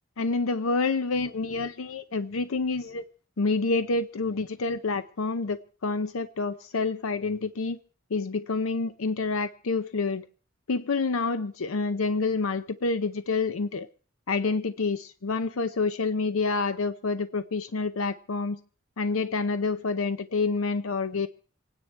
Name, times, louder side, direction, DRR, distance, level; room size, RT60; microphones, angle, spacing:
voice 1, 0.2-3.0 3.4-7.8 8.1-10.2 10.7-13.9 14.3-18.6 19.0-21.3, left 4 dB, 85° left, 0.6 m, -28 dB
26.0 x 9.8 x 4.5 m
head